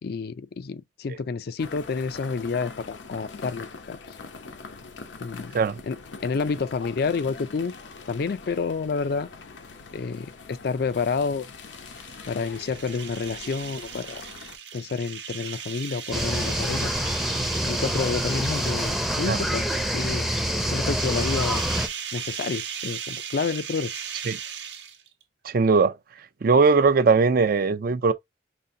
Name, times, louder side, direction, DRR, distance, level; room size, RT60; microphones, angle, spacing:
voice 1, 0.0-4.0 5.2-5.6 5.8-6.0 6.2-7.7 8.1-9.3 9.9-11.5 12.3-14.2 14.7-16.9 17.6-19.7 19.9-20.3 20.7-21.6 22.1-24.0, left 4 dB, 60° left, 0.4 m, -29 dB
sound 1, 1.6-14.6, left 4 dB, 85° left, 0.7 m, -43 dB
sound 2, 11.6-19.3 20.8-25.2, right 8 dB, 75° right, 1.0 m, -38 dB
sound 3, 16.1-21.9, equal, ahead, 0.6 m, -26 dB
voice 2, 25.4-25.9 26.4-28.1, right 4 dB, 55° right, 0.4 m, -19 dB
5.2 x 2.5 x 2.6 m
head